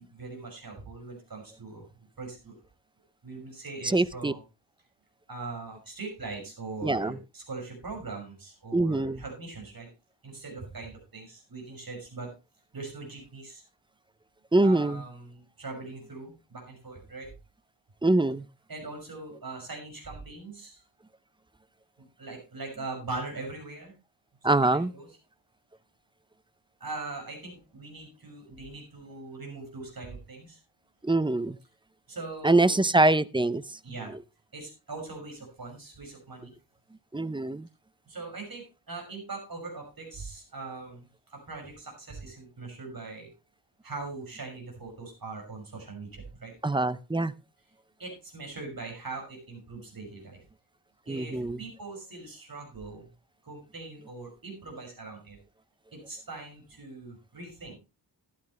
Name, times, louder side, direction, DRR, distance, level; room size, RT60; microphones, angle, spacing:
voice 1, 0.0-1.9 2.2-2.5 3.2-4.4 5.3-9.9 10.2-12.3 12.7-13.6 14.6-17.3 18.7-20.8 22.0-23.9 24.5-25.1 26.8-30.6 32.1-32.9 33.8-34.1 34.5-36.5 38.0-43.3 43.8-46.5 48.0-50.4 51.1-53.1 53.4-55.4 55.9-57.8, right 3 dB, 55° right, 6.1 m, -41 dB
voice 2, 3.8-4.3 6.8-7.2 8.7-9.2 14.5-15.0 18.0-18.5 24.4-24.9 31.0-31.6 32.4-33.8 34.1-34.2 37.1-37.7 46.6-47.3 51.1-51.6, right 2 dB, 10° right, 0.5 m, -24 dB
13.5 x 11.0 x 3.1 m
wide cardioid pair, 105°, 43 cm